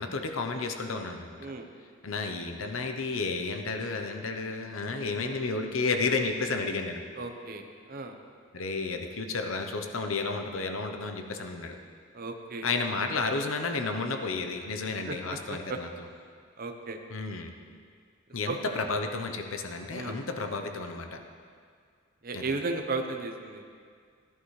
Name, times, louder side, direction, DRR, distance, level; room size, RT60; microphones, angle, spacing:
voice 1, 0.0-1.4 2.0-7.0 8.5-11.8 12.6-15.9 17.1-17.5 18.3-21.2 22.3-22.4, left 3 dB, 75° left, 5 dB, 0.8 m, -32 dB
voice 2, 7.2-8.1 12.1-12.7 15.1-15.2 15.7-15.8 16.6-17.0 18.5-18.6 19.9-20.2 22.2-23.6, right 3 dB, 45° right, 4 dB, 0.9 m, -35 dB
15.0 x 11.0 x 3.3 m, 2.1 s
head